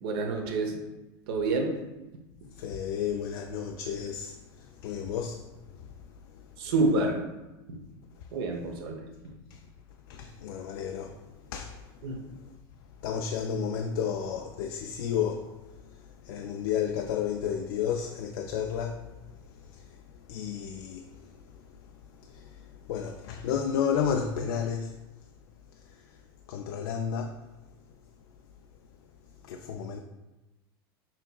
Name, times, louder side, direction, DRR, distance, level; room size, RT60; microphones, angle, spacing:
voice 1, 0.0-0.7 1.3-1.7 6.6-7.2 7.7-7.8 8.3-9.0 12.0-12.2, right 3 dB, 70° right, 0.9 m, -28 dB
voice 2, 2.5-6.7 8.1-8.8 9.5-9.7 10.1-12.6 12.8-25.4 25.7-27.4 27.7-27.8 28.9-30.0, left 7 dB, 70° left, 0.4 m, -34 dB
5.8 x 2.8 x 2.3 m
supercardioid pair, 115°, 13 cm